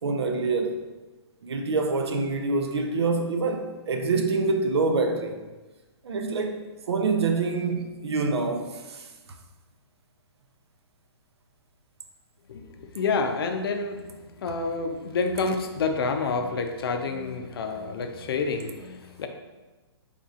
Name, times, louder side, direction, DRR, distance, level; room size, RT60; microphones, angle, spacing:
voice 1, 0.0-0.8 1.4-5.4 6.0-9.1, right 3 dB, 80° right, 0.6 m, -26 dB
voice 2, 12.5-14.1 14.4-19.3, left 4 dB, 65° left, 0.5 m, -28 dB
4.1 x 3.5 x 2.4 m
hypercardioid pair, 150°, 14 cm